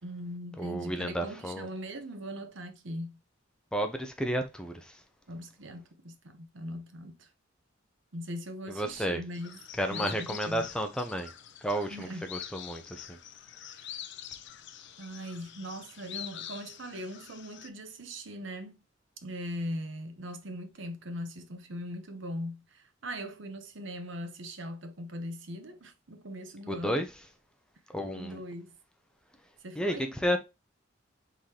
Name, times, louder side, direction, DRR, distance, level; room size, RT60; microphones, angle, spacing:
voice 1, 0.0-3.2 5.3-7.3 8.1-9.6 9.9-10.7 11.9-12.3 13.6-14.0 15.0-18.8 19.2-27.0 28.1-28.7 29.6-30.1, equal, 70° right, 0.9 m, -40 dB
voice 2, 0.6-1.7 3.7-5.0 8.7-9.2 9.8-11.3 11.6-13.2 26.7-27.1 27.9-28.4 29.8-30.4, equal, 5° left, 0.7 m, -32 dB
sound 1, 9.3-17.7, left 10 dB, 60° left, 0.5 m, -45 dB
5.0 x 3.9 x 2.8 m
head